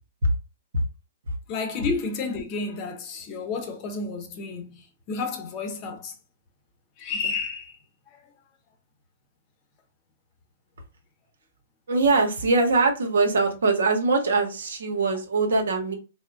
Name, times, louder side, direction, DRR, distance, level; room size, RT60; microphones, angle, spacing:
voice 1, 1.5-6.1 7.0-7.8, left 4 dB, 35° left, 0.8 m, -31 dB
voice 2, 11.9-15.9, right 3 dB, 80° right, 0.9 m, -22 dB
3.6 x 2.1 x 2.4 m
hypercardioid pair, 130°, 0 cm